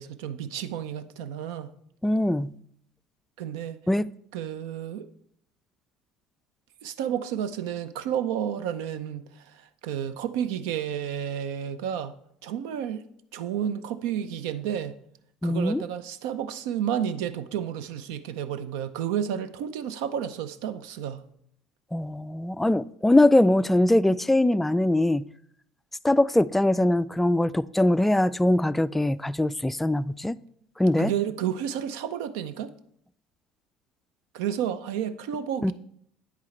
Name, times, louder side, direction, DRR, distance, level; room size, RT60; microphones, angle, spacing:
voice 1, 0.0-1.7 3.4-3.8 4.3-5.1 6.8-12.1 12.4-13.0 13.3-15.0 15.4-21.2 31.0-32.7 34.3-35.7, right 9 dB, 75° right, 0.6 m, -31 dB
voice 2, 2.0-2.5 3.9-4.1 15.4-15.8 21.9-25.3 26.0-30.4 30.8-31.1 35.6-35.7, left 1 dB, 10° left, 0.3 m, -22 dB
9.3 x 8.3 x 3.2 m
hypercardioid pair, 70°, 2 cm